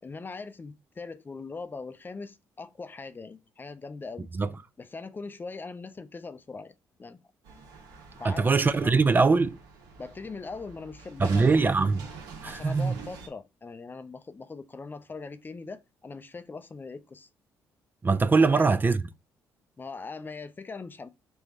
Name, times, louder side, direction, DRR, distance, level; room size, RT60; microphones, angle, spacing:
voice 1, 0.0-4.3 4.8-6.7 7.0-7.2 8.2-8.9 10.0-11.5 12.4-17.3 18.4-18.6 19.8-21.1, left 4 dB, 30° left, 0.5 m, -41 dB
sound 1, 7.4-13.3, right 5 dB, 80° right, 1.1 m, -45 dB
voice 2, 8.2-9.6 11.2-12.1 12.4-13.0 18.0-19.0, right 4 dB, 25° right, 0.4 m, -22 dB
3.4 x 2.6 x 4.5 m
supercardioid pair, 60°, 7 cm